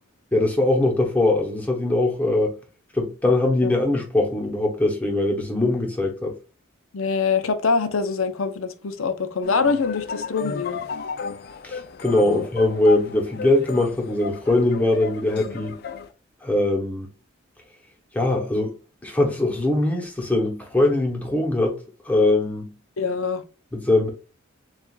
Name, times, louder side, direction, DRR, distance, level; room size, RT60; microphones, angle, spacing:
voice 1, 0.3-2.5 2.9-6.4 11.6-15.8 16.4-17.1 18.1-18.7 19.0-21.8 22.1-22.7 23.7-24.1, left 2 dB, 5° left, 0.9 m, -21 dB
voice 2, 6.9-10.8 12.2-12.5 23.0-23.4, left 5 dB, 80° left, 0.7 m, -24 dB
sound 1, 9.4-16.1, left 5 dB, 50° left, 0.3 m, -34 dB
7.2 x 2.4 x 2.4 m
head